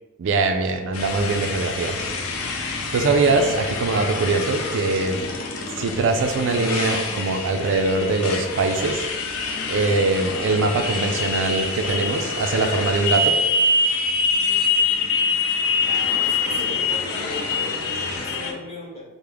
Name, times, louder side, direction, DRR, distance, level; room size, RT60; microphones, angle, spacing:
voice 1, 0.2-2.0 2.9-5.3 5.8-9.0 9.7-13.4, right 3 dB, 60° right, 6 dB, 0.4 m, -22 dB
Motorcycle, 0.9-18.5, left 3 dB, 65° left, 0.6 m, -25 dB
voice 2, 15.8-19.0, left 1 dB, 30° left, -6 dB, 1.3 m, -37 dB
4.9 x 2.1 x 3.4 m, 1.2 s
head